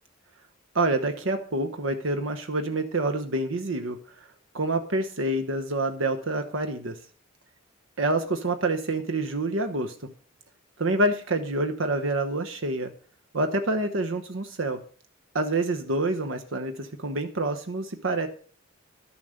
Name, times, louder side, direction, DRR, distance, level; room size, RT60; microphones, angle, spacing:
voice 1, 0.7-4.3 4.5-7.0 8.0-9.9 10.8-12.9 13.3-14.8 15.3-18.3, right 2 dB, 75° right, 7 dB, 1.0 m, -27 dB
12.0 x 7.2 x 6.5 m, 0.44 s
head